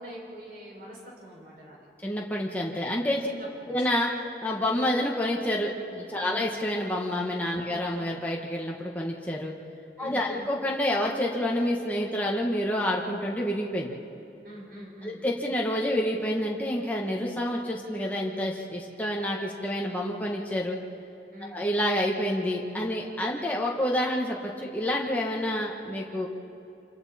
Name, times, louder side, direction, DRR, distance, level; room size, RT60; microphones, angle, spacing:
voice 1, 0.0-1.9 2.5-2.7 3.2-3.8 6.2-6.5 7.7-7.8 10.0-10.5 14.4-15.2 21.3-21.7, equal, 55° right, -3 dB, 6.2 m, -44 dB
voice 2, 2.0-3.3 3.7-4.1 4.4-9.5 10.0-13.9 15.0-20.8 21.5-26.3, left 1 dB, 10° left, -2 dB, 1.4 m, -28 dB
27.5 x 25.5 x 4.3 m, 2.7 s
head